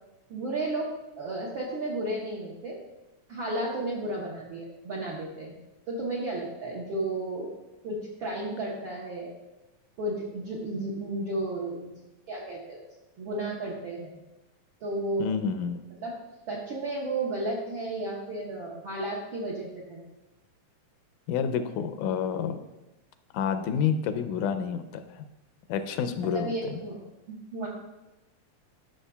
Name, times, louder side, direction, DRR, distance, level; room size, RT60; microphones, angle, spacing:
voice 1, 0.3-0.9 1.1-2.8 3.3-5.5 5.9-7.5 7.8-9.3 10.0-12.0 12.3-12.8 13.2-14.2 14.8-15.4 16.0-16.1 16.5-20.0 26.2-27.0 27.3-27.7, right 2 dB, 65° right, -4 dB, 1.2 m, -33 dB
voice 2, 15.2-15.8 21.3-22.6 23.3-25.3 25.7-26.8, left 7 dB, 85° left, 8 dB, 2.0 m, -29 dB
12.5 x 6.1 x 2.3 m, 0.99 s
omnidirectional pair, 3.5 m